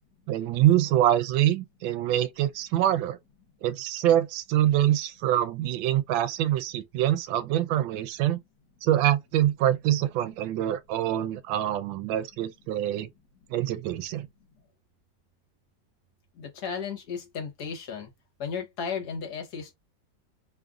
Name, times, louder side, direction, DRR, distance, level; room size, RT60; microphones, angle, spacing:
voice 1, 0.3-3.2 3.6-8.4 8.8-13.1 13.5-14.3, right 12 dB, 90° right, 1.3 m, -25 dB
voice 2, 16.4-18.1 18.4-19.7, left 6 dB, 60° left, 1.4 m, -34 dB
3.3 x 2.5 x 2.3 m
omnidirectional pair, 2.0 m